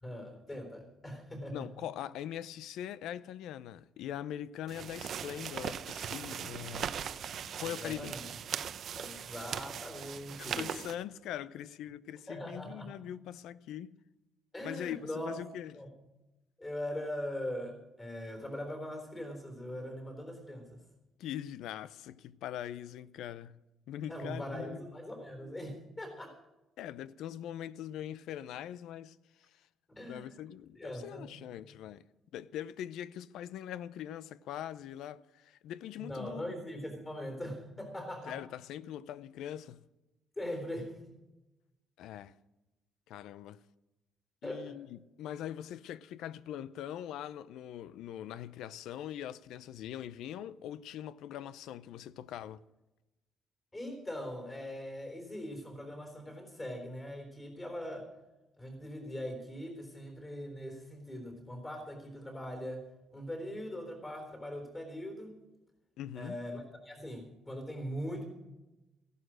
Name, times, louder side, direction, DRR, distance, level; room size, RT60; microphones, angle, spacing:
voice 1, 0.0-1.6 7.6-8.2 8.9-10.8 12.3-13.0 14.5-15.4 15.7-15.9 16.6-20.8 24.1-26.3 29.9-30.3 30.7-31.4 36.0-38.4 40.4-41.2 44.4-44.8 53.7-58.1 58.6-65.3 66.2-68.2, equal, 15° left, 3.7 m, -41 dB
voice 2, 1.5-8.2 10.4-13.9 14.6-15.7 21.2-23.6 23.9-24.8 26.8-29.7 30.1-32.0 32.3-36.5 38.3-39.8 42.0-42.3 43.1-43.6 44.4-52.6 66.0-66.4, left 11 dB, 80° left, 0.6 m, -42 dB
sound 1, 4.7-10.9, right 8 dB, 50° right, 0.6 m, -39 dB
15.0 x 11.5 x 6.3 m
cardioid pair, 145°, 0 cm